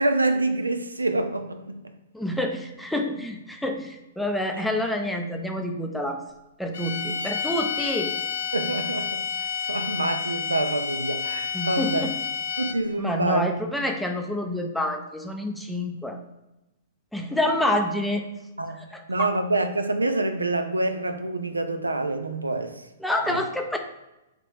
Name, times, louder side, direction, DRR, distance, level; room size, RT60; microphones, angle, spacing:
voice 1, 0.0-1.8 8.5-12.1 12.6-13.5 18.6-22.8 23.3-23.4, right 2 dB, 85° right, 0.4 m, -26 dB
voice 2, 2.1-6.2 6.6-8.1 11.5-12.1 13.0-16.2 17.1-18.2 18.9-19.3 23.0-23.8, left 1 dB, ahead, 0.4 m, -28 dB
sound 1, 6.7-13.0, left 8 dB, 60° left, 0.4 m, -30 dB
3.3 x 2.9 x 3.2 m
figure-of-eight pair, 110°, 0 cm